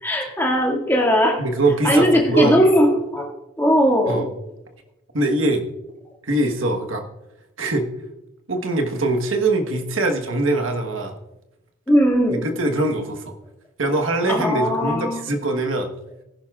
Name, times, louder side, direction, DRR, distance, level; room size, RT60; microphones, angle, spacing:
voice 1, 0.0-1.4 1.8-3.2 3.6-4.2 11.9-12.5 14.3-15.2, equal, 10° left, -2 dB, 2.1 m, -18 dB
voice 2, 1.4-2.6 4.1-4.3 5.1-5.6 6.2-7.0 7.6-7.9 8.5-11.1 12.3-13.3 13.8-15.9, right 2 dB, 80° right, 4 dB, 1.3 m, -22 dB
18.5 x 10.5 x 2.4 m, 0.94 s
head